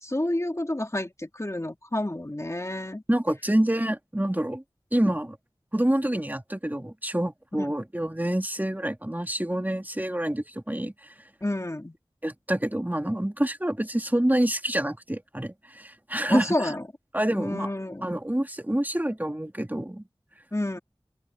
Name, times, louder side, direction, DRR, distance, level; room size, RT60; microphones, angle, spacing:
voice 1, 0.0-3.0 7.6-7.7 11.4-12.0 16.3-16.8 17.3-18.1 20.5-20.8, left 1 dB, 30° left, 2.8 m, -29 dB
voice 2, 3.1-4.6 4.9-5.4 5.7-10.9 12.2-16.7 17.1-17.7 18.0-20.0, right 1 dB, 20° right, 2.8 m, -27 dB
open air
wide cardioid pair, 45°, 10 cm